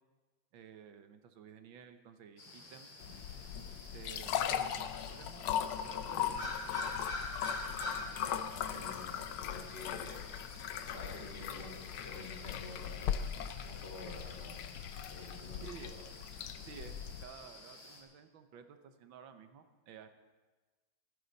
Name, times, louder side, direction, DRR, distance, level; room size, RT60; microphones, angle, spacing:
voice 1, 0.5-2.9 3.9-6.5 15.6-16.0 16.6-20.1, right 7 dB, 70° right, 8 dB, 1.8 m, -53 dB
sound 1, 2.4-18.0, left 2 dB, 65° left, 3.2 m, -47 dB
sound 2, 3.0-17.2, left 9 dB, 90° left, 1.6 m, -39 dB
voice 2, 8.0-9.2 9.5-10.2 10.9-13.1 13.6-14.6 15.1-15.7, left 2 dB, 35° left, -1 dB, 3.2 m, -49 dB
26.5 x 10.0 x 4.1 m, 1.3 s
omnidirectional pair, 2.2 m